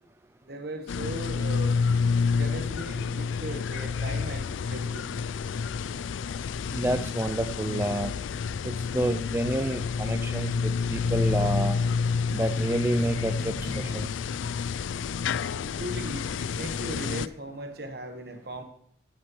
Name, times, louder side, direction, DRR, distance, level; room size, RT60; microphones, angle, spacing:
voice 1, 0.4-1.8 2.3-5.1 15.6-18.6, right 1 dB, 55° right, 5 dB, 1.4 m, -38 dB
sound 1, 0.9-17.3, left 5 dB, 85° left, 0.4 m, -29 dB
voice 2, 6.7-8.1 8.6-11.8 12.3-14.1, right 1 dB, 15° right, 8 dB, 0.3 m, -29 dB
sound 2, 7.6-15.0, equal, 65° left, 2.9 m, -45 dB
16.0 x 8.6 x 3.2 m, 0.67 s
head